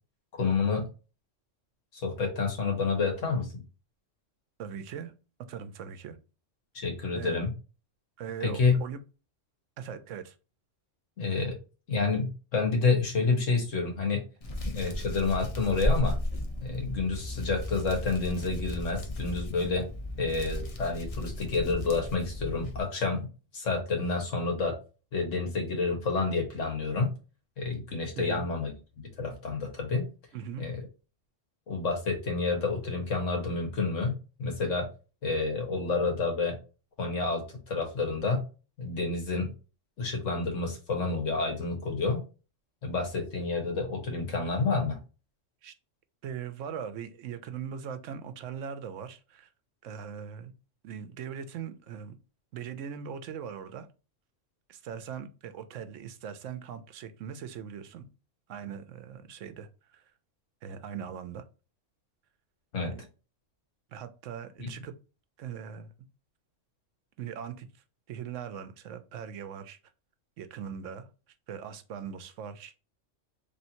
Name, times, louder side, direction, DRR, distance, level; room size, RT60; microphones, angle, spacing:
voice 1, 0.3-0.9 1.9-3.6 6.7-7.5 8.4-8.8 11.2-11.5 11.9-14.2 14.6-16.2 16.6-19.9 20.2-23.3 23.5-24.8 25.1-27.1 27.6-28.7 29.0-30.1 30.6-30.8 31.7-34.9 35.2-36.6 37.0-38.4 38.8-39.5 40.0-42.2 42.8-45.0 62.7-62.9 64.6-64.7, left 4 dB, 85° left, 1.7 m, -29 dB
voice 2, 4.6-5.1 5.5-6.2 7.1-7.4 8.2-9.0 9.8-10.3 28.2-28.5 30.3-30.6 45.6-45.7 46.2-49.5 49.8-50.5 50.8-52.2 52.5-53.9 54.7-58.1 58.5-60.1 60.6-61.5 62.8-63.0 63.9-64.9 65.4-65.9 67.2-67.7 68.1-69.8 70.4-71.1 71.5-72.7, right 8 dB, 85° right, 1.0 m, -40 dB
Hands, 14.4-22.8, left 1 dB, 35° left, 0.7 m, -34 dB
4.4 x 3.3 x 2.7 m
omnidirectional pair, 1.3 m